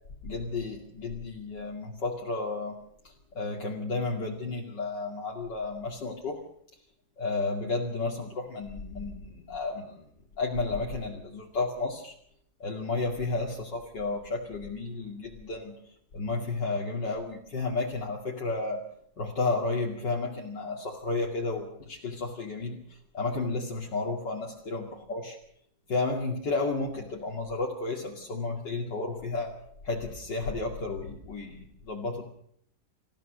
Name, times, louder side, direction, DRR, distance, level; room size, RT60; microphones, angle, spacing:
voice 1, 0.2-2.8 3.3-6.4 7.2-10.0 10.4-12.1 12.6-15.8 16.1-18.8 19.2-25.4 25.9-29.5 29.8-32.2, left 3 dB, 60° left, -1 dB, 3.1 m, -32 dB
27.0 x 15.5 x 6.6 m, 0.66 s
omnidirectional pair, 2.2 m